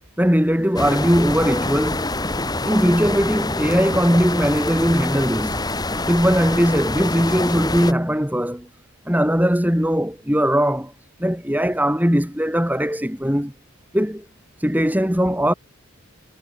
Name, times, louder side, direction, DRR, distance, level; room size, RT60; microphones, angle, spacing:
voice 1, 0.2-2.1 2.6-5.6 6.1-8.7 9.1-10.9 11.2-13.5 13.9-14.2 14.6-15.5, equal, 10° right, 4.7 m, -19 dB
sound 1, 0.8-7.9, left 2 dB, 15° left, 3.9 m, -25 dB
head